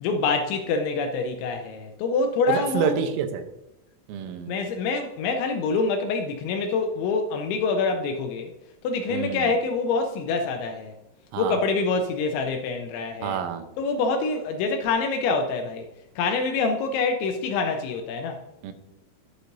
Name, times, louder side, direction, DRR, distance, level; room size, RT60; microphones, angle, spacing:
voice 1, 0.0-3.0 4.2-8.5 8.8-10.9 11.4-13.4 13.8-15.9 16.2-18.4, left 4 dB, 80° left, 5 dB, 2.7 m, -26 dB
voice 2, 2.5-3.5 4.1-4.6 9.1-9.5 11.3-11.6 13.2-13.7 18.6-18.7, right 8 dB, 90° right, 8 dB, 3.6 m, -28 dB
11.5 x 8.2 x 2.6 m, 0.89 s
omnidirectional pair, 5.9 m